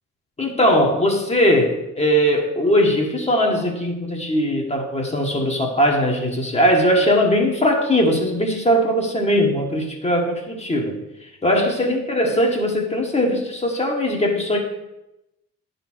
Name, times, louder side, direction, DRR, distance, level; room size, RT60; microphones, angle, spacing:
voice 1, 0.4-14.6, equal, 20° left, 1 dB, 1.6 m, -20 dB
9.9 x 4.1 x 6.3 m, 0.92 s
cardioid pair, 90°, 30 cm